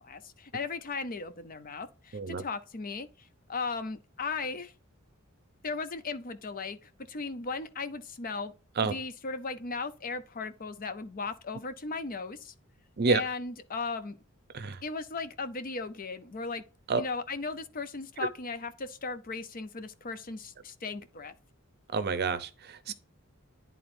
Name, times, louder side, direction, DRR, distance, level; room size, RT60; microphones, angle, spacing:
voice 1, 0.0-4.7 5.6-8.5 8.8-12.5 13.1-14.2 14.8-16.6 16.9-21.3 22.9-23.0, left 4 dB, 40° left, 0.7 m, -37 dB
voice 2, 21.9-22.9, right 4 dB, 50° right, 0.6 m, -28 dB
10.5 x 3.9 x 2.6 m
head